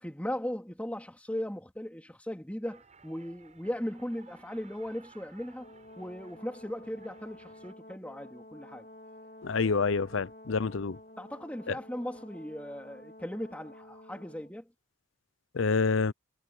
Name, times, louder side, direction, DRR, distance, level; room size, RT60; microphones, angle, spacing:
voice 1, 0.0-8.9 11.2-14.7, equal, 5° left, 3.3 m, -38 dB
sound 1, 2.6-7.7, right 4 dB, 35° right, 6.8 m, -58 dB
Brass instrument, 5.6-14.5, left 1 dB, 45° left, 3.4 m, -51 dB
voice 2, 9.4-11.0 15.5-16.1, left 4 dB, 70° left, 0.6 m, -27 dB
head